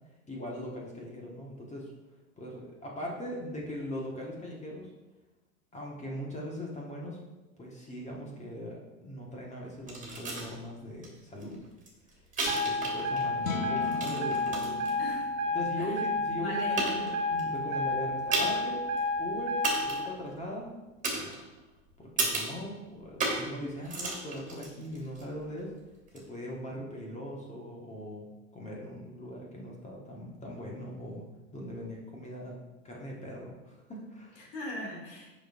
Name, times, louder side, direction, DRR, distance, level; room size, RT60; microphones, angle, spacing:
voice 1, 0.3-1.9 2.4-4.9 5.7-7.2 7.6-11.6 12.5-14.8 15.5-18.8 19.2-19.6 19.8-20.7 21.1-21.4 22.0-25.7 26.1-31.3 31.5-34.4, equal, 15° left, -2 dB, 1.6 m, -40 dB
sound 1, 9.9-10.5 11.0-11.1 11.4-13.3 13.6-14.9 15.6-15.7 16.3-16.4 16.8-17.4 18.3-18.7 19.0-19.1 19.6-20.1 21.0-21.7 22.2-22.6 23.2-23.5 23.8-25.2 26.1-26.2, right 3 dB, 20° right, 2.7 m, -33 dB
sound 2, 12.5-20.1, left 1 dB, 65° right, 1.6 m, -31 dB
voice 2, 13.1-13.7 15.0-15.3 15.8-15.9 16.4-17.1 34.4-35.3, left 2 dB, 50° left, -3 dB, 2.7 m, -40 dB
sound 3, 13.4-19.7, left 7 dB, 80° left, 1.0 m, -42 dB
9.9 x 6.4 x 2.7 m, 1.1 s
figure-of-eight pair, 90°, 40 cm